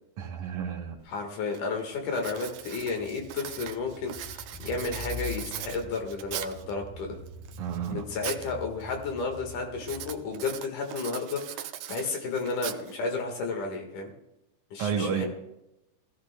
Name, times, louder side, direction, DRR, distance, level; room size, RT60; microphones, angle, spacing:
voice 1, 0.2-1.0 7.6-8.0 14.8-15.3, right 7 dB, 65° right, -1 dB, 3.3 m, -31 dB
Writing, 1.0-1.1 1.5-1.8 2.1-6.7 7.3-8.5 8.8-9.2 9.8-13.2, right 12 dB, 85° right, 1.6 m, -40 dB
voice 2, 1.1-7.2 7.9-14.1 14.7-15.3, left 4 dB, 70° left, 3 dB, 3.1 m, -32 dB
Car / Engine, 2.2-10.5, left 3 dB, ahead, 4.3 m, -44 dB
21.5 x 15.0 x 2.2 m, 0.90 s
omnidirectional pair, 3.9 m